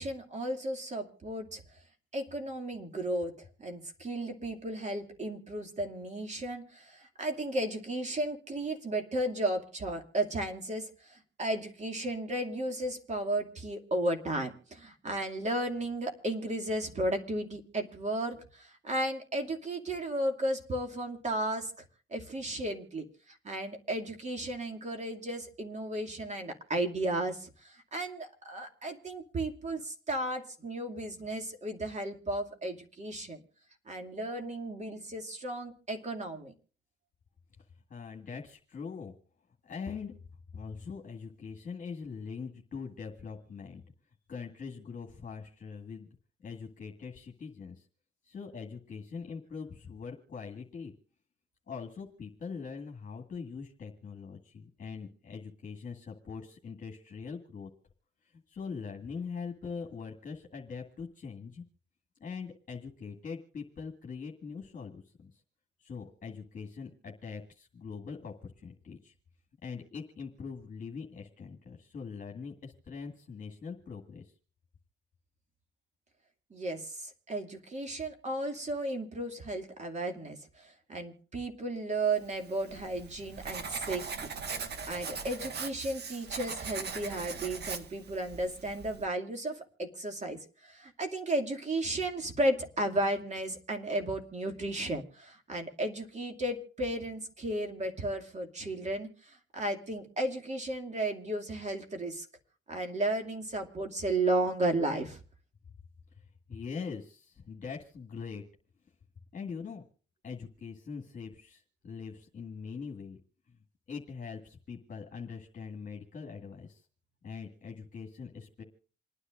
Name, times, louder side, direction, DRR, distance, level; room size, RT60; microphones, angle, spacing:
voice 1, 0.0-1.6 2.1-21.7 22.1-33.4 33.9-36.5 76.5-84.1 84.9-102.3 102.7-105.2, right 1 dB, 35° right, 5 dB, 2.5 m, -34 dB
voice 2, 37.9-39.1 39.6-40.1 40.5-43.8 44.3-46.1 46.4-47.9 48.2-50.9 51.7-57.7 58.2-61.6 62.2-65.4 65.8-69.1 69.6-74.3 106.1-108.4 109.3-109.8 110.2-113.2 113.5-113.6 113.9-116.9 117.2-118.6, left 5 dB, 40° left, 1 dB, 2.0 m, -42 dB
Writing, 82.3-89.1, right 5 dB, 55° right, 1.6 m, -40 dB
28.0 x 9.9 x 2.6 m, 0.41 s
cardioid pair, 90°, 20 cm